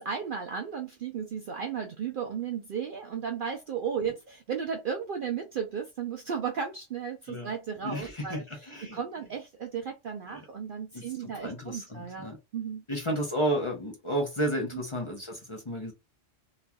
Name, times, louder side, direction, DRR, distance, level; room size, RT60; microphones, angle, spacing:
voice 1, 0.0-12.8 14.7-14.8, right 7 dB, 60° right, 0.6 m, -35 dB
voice 2, 7.8-9.0 10.3-10.4 10.9-12.4 12.9-15.9, right 1 dB, 30° left, 0.8 m, -32 dB
3.0 x 2.6 x 2.2 m
omnidirectional pair, 1.3 m